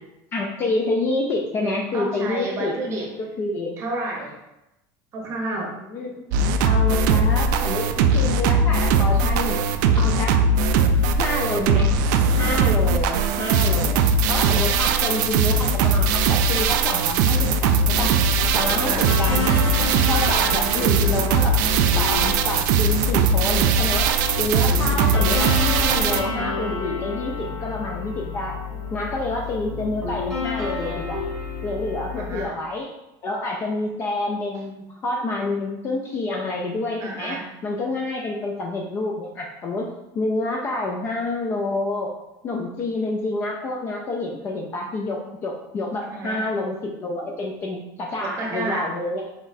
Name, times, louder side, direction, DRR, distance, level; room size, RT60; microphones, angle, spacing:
voice 1, 0.3-2.8 3.4-3.8 5.6-6.2 6.6-9.7 10.0-10.4 11.2-11.9 12.4-14.0 14.3-18.1 18.5-19.5 20.1-21.6 21.9-24.1 24.4-28.6 28.9-31.2 31.6-32.9 33.2-39.9 40.2-42.1 42.4-49.2, left 2 dB, 25° left, 0 dB, 0.3 m, -28 dB
voice 2, 1.9-3.1 3.8-4.3 5.1-5.7 18.9-19.1 24.5-24.7 32.1-32.5 37.0-37.4 46.1-46.4 48.2-48.9, right 2 dB, 30° right, 0 dB, 0.8 m, -30 dB
sound 1, 6.3-26.2, right 4 dB, 75° right, 0.4 m, -20 dB
sound 2, 17.8-32.4, left 4 dB, ahead, 1.2 m, -30 dB
4.0 x 4.0 x 2.6 m, 0.94 s
cardioid pair, 180°, 10 cm